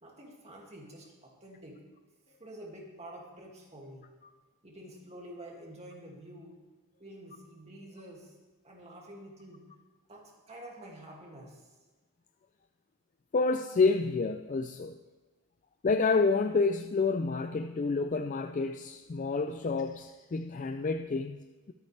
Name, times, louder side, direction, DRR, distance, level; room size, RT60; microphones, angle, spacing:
voice 1, 0.0-1.9 2.3-4.1 4.6-6.6 7.0-8.4 8.6-9.7 10.1-11.7, right 1 dB, 30° right, -1 dB, 2.3 m, -48 dB
voice 2, 13.3-15.0 15.8-21.7, left 4 dB, 35° left, 7 dB, 0.4 m, -29 dB
23.0 x 8.4 x 3.3 m, 1.2 s
head